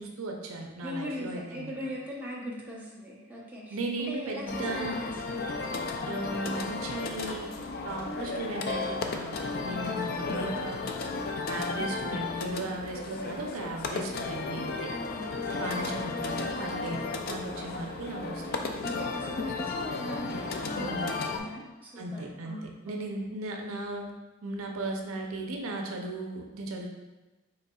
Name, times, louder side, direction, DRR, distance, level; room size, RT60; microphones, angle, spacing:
voice 1, 0.0-1.7 3.7-5.0 6.0-7.5 7.8-10.8 11.5-14.9 15.6-18.6 20.8-21.1 22.0-22.6 22.8-24.1 24.4-26.9, right 2 dB, 80° right, 1 dB, 0.6 m, -36 dB
voice 2, 0.8-5.5 9.6-10.1 12.6-12.7 15.1-15.7 16.7-16.9 18.6-23.0, left 1 dB, 10° right, -5 dB, 0.9 m, -40 dB
sound 1, 4.5-21.4, left 3 dB, 50° left, 0.4 m, -34 dB
5.4 x 4.0 x 2.3 m, 1.1 s
head